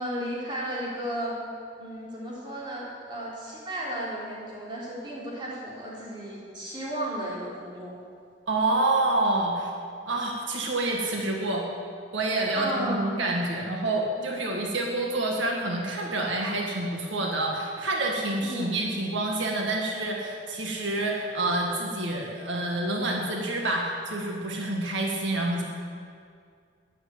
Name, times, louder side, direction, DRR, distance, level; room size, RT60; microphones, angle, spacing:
voice 1, 0.0-1.4 1.8-7.9 12.5-13.2 18.4-18.8, right 1 dB, 25° right, -5 dB, 3.6 m, -34 dB
voice 2, 8.5-9.7 10.1-11.6 12.1-25.6, right 2 dB, 80° right, 0 dB, 1.8 m, -28 dB
13.0 x 10.5 x 7.8 m, 2.2 s
head